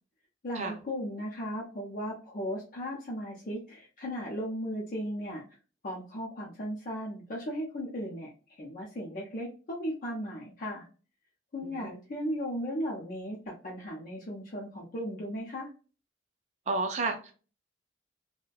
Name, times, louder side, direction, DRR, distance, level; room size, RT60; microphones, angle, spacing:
voice 1, 0.4-5.4 5.8-8.3 8.6-10.8 11.5-15.7, equal, 50° left, 0.6 m, -36 dB
voice 2, 16.7-17.3, right 3 dB, 40° right, 0.5 m, -31 dB
2.5 x 2.1 x 2.2 m
head